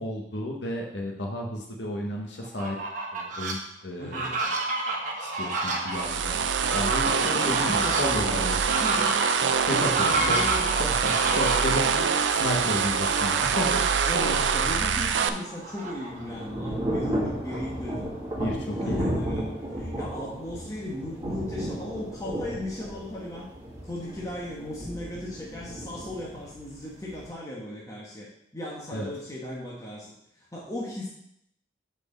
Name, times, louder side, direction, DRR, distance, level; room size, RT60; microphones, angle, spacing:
voice 1, 0.0-2.8 3.1-4.4 5.2-6.4 6.7-8.7 9.7-10.4 10.8-13.8 18.3-19.1 28.9-29.1, left 1 dB, 70° left, 1 dB, 1.2 m, -32 dB
Fowl, 2.4-3.5 4.0-11.8 12.8-13.8 14.3-14.4 14.7-16.5, right 3 dB, 45° right, 1.4 m, -30 dB
voice 2, 4.0-4.3 7.1-9.2 10.0-10.8 11.0-11.4 14.0-18.1 18.7-23.5 23.8-28.3 28.5-31.1, left 1 dB, 20° left, -5 dB, 1.1 m, -36 dB
sound 1, 5.9-15.3, right 6 dB, 80° right, 0.5 m, -25 dB
Thunder / Rain, 15.4-27.3, right 1 dB, 15° right, 2.1 m, -34 dB
5.9 x 4.6 x 6.5 m, 0.75 s
head